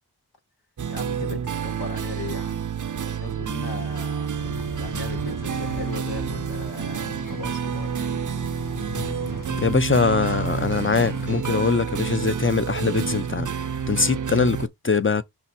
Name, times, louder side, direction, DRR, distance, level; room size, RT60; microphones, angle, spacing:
sound 1, 0.8-14.7, right 7 dB, 55° right, 0.6 m, -29 dB
voice 1, 0.9-2.7 2.9-4.3 4.8-8.2, left 4 dB, 80° left, 1.6 m, -38 dB
sound 2, 4.4-11.4, left 4 dB, 55° left, 1.1 m, -39 dB
voice 2, 9.6-13.5 13.9-15.2, left 4 dB, 30° left, 0.8 m, -22 dB
6.0 x 4.1 x 4.3 m
wide cardioid pair, 70°, 38 cm